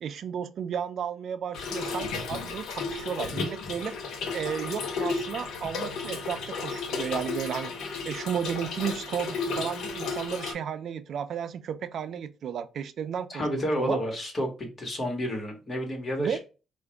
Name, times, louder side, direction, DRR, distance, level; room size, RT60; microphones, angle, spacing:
voice 1, 0.0-3.9 4.3-7.7 8.1-13.4 13.8-14.0 16.2-16.4, right 8 dB, 65° right, 0.4 m, -33 dB
Trickle dribble / Fill (with liquid), 1.5-10.5, left 4 dB, 80° left, 0.8 m, -33 dB
voice 2, 13.3-16.4, equal, 35° left, 1.7 m, -30 dB
4.7 x 2.5 x 3.4 m
cardioid pair, 90°, 0 cm